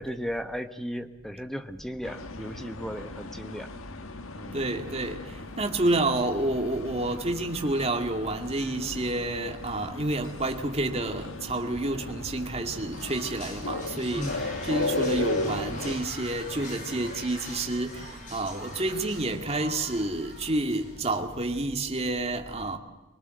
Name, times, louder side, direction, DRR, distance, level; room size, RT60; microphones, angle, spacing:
voice 1, 0.0-3.7 4.4-4.6 14.1-14.5, equal, ahead, 1.2 m, -35 dB
sound 1, 2.0-16.0, left 2 dB, 75° left, 1.6 m, -36 dB
voice 2, 4.5-5.2 5.6-22.8, right 2 dB, 30° right, 2.1 m, -29 dB
sound 2, 12.9-21.5, left 1 dB, 35° left, 5.9 m, -42 dB
25.0 x 20.0 x 7.8 m
head